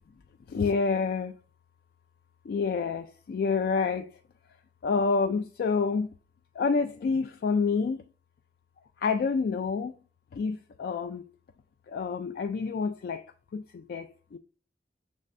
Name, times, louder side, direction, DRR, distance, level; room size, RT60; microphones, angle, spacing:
voice 1, 0.5-1.3 2.5-4.1 4.8-6.1 6.6-8.0 9.0-9.9 10.3-11.2 11.9-13.2 13.5-14.4, left 4 dB, 60° left, 0.3 m, -28 dB
6.4 x 3.2 x 2.5 m
head